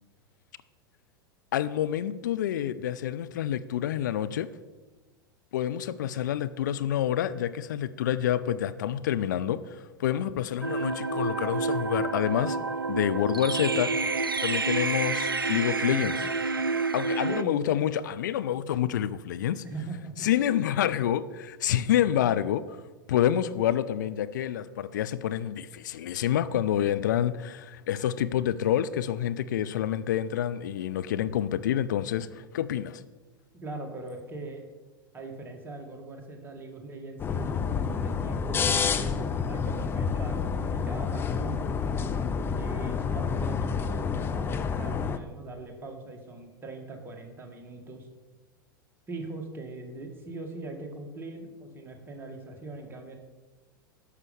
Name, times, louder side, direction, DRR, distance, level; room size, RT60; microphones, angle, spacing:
voice 1, 1.5-4.5 5.5-12.6 12.9-16.3 16.9-19.6 20.2-22.6 23.1-33.0, left 10 dB, 60° left, 12 dB, 0.5 m, -28 dB
sound 1, 10.6-17.4, right 3 dB, 85° right, 0.4 m, -29 dB
voice 2, 17.3-17.7 19.6-20.3 33.5-34.6 35.1-41.7 42.6-48.1 49.1-53.2, right 3 dB, 20° right, 2 dB, 1.9 m, -41 dB
sound 2, 37.2-45.2, left 6 dB, 20° left, 0.6 m, -29 dB
11.5 x 6.7 x 5.3 m, 1.2 s
figure-of-eight pair, 85°, 11 cm